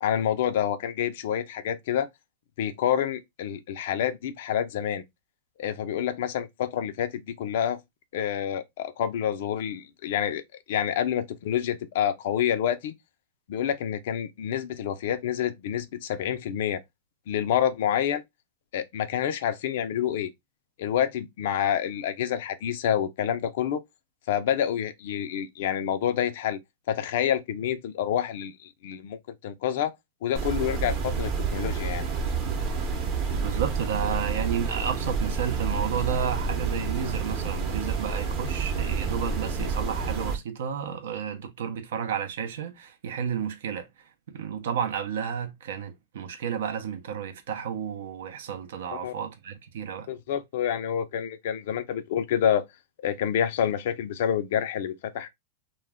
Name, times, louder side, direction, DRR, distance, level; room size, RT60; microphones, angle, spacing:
voice 1, 0.0-2.1 2.6-5.0 5.6-7.8 8.1-10.4 10.7-12.9 13.5-16.8 17.3-18.2 18.7-20.3 20.8-23.8 24.3-26.6 26.9-29.9 30.2-32.1 48.9-49.1 50.1-52.6 53.0-55.3, left 9 dB, 65° left, 0.4 m, -28 dB
sound 1, 30.3-40.4, right 5 dB, 35° right, 0.8 m, -29 dB
voice 2, 33.4-43.9 44.3-50.1, right 8 dB, 75° right, 0.6 m, -32 dB
2.2 x 2.1 x 3.3 m
hypercardioid pair, 125°, 0 cm